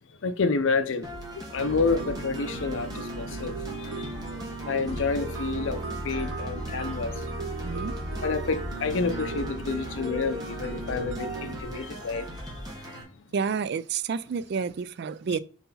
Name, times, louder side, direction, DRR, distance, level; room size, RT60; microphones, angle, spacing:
voice 1, 0.2-1.1 1.4-3.6 4.0-4.1 4.7-5.8 6.0-7.1 8.2-12.3 15.3-15.4, left 4 dB, 65° left, 0.5 m, -29 dB
sound 1, 1.0-13.0, equal, 20° right, 1.6 m, -39 dB
sound 2, 1.6-11.6, right 2 dB, 80° right, 0.9 m, -36 dB
voice 2, 7.6-7.9 13.3-15.4, right 6 dB, 50° right, 0.3 m, -29 dB
4.6 x 4.2 x 5.5 m
head